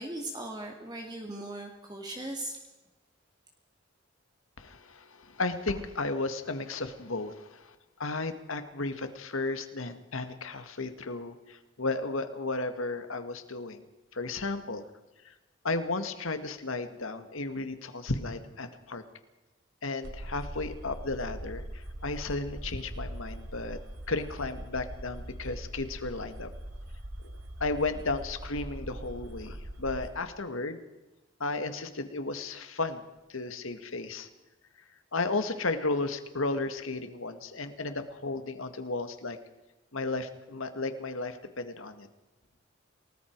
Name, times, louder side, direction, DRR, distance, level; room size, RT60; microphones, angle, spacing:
voice 1, 0.0-2.6, right 1 dB, 20° right, 2 dB, 2.3 m, -38 dB
voice 2, 4.6-13.8 14.1-14.8 15.2-15.3 15.6-19.0 19.8-23.8 24.1-26.5 27.6-30.8 31.4-33.0 33.3-34.3 35.1-39.4 39.9-42.1, left 3 dB, 80° left, 9 dB, 1.9 m, -34 dB
sound 1, 20.0-30.1, right 1 dB, 85° right, 2.8 m, -41 dB
28.5 x 19.5 x 4.7 m, 1.1 s
head